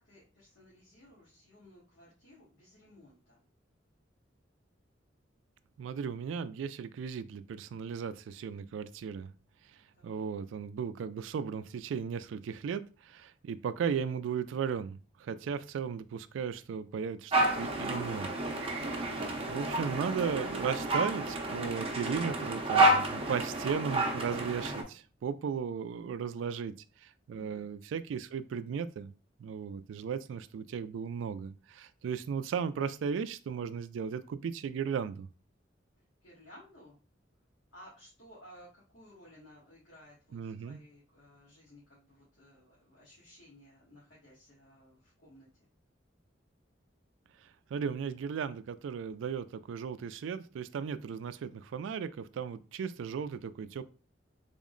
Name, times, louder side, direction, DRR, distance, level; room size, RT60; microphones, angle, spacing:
voice 1, 0.0-3.4 10.0-10.2 27.3-27.6 36.2-36.9 37.7-38.7 38.9-45.5, equal, 80° left, -8 dB, 1.5 m, -57 dB
voice 2, 5.8-9.3 10.0-26.7 27.0-29.1 29.4-35.3 40.3-40.8 47.7-53.8, right 6 dB, 80° right, 13 dB, 0.3 m, -36 dB
sound 1, 17.3-24.8, right 2 dB, 30° right, 0.6 m, -30 dB
3.6 x 2.0 x 3.7 m, 0.34 s
head